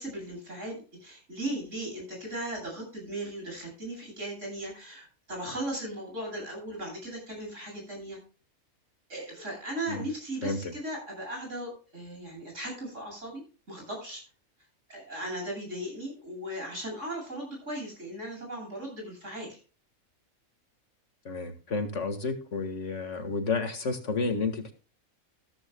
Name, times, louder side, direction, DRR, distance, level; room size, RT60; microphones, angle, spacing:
voice 1, 0.0-8.2 9.1-13.4 13.7-14.2 14.9-19.6, right 1 dB, 60° right, 1 dB, 8.6 m, -37 dB
voice 2, 10.4-10.7 21.3-24.7, left 4 dB, 55° left, 7 dB, 2.0 m, -31 dB
14.5 x 14.5 x 2.2 m, 0.36 s
omnidirectional pair, 1.5 m